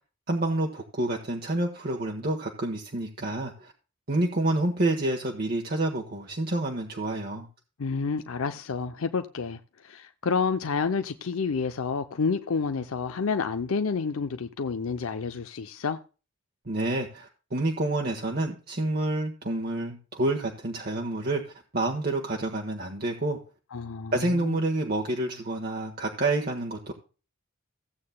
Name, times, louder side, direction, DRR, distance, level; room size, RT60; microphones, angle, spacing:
voice 1, 0.3-3.7 4.1-7.5 16.6-21.4 21.7-23.4 24.1-26.9, right 2 dB, 45° right, 1.4 m, -28 dB
voice 2, 7.8-16.0 23.7-24.6, left 5 dB, 85° left, 0.6 m, -29 dB
16.0 x 8.6 x 2.2 m
head